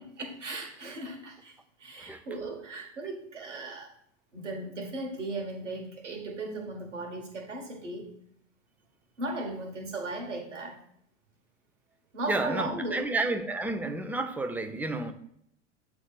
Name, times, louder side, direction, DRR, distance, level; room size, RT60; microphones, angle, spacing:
voice 1, 0.1-1.5 1.8-3.9 4.3-8.2 9.2-10.8 12.1-13.1, right 2 dB, 85° right, 1.6 m, -37 dB
voice 2, 12.2-15.1, right 2 dB, 5° right, 0.7 m, -31 dB
8.0 x 3.4 x 5.9 m
hypercardioid pair, 95°, 35 cm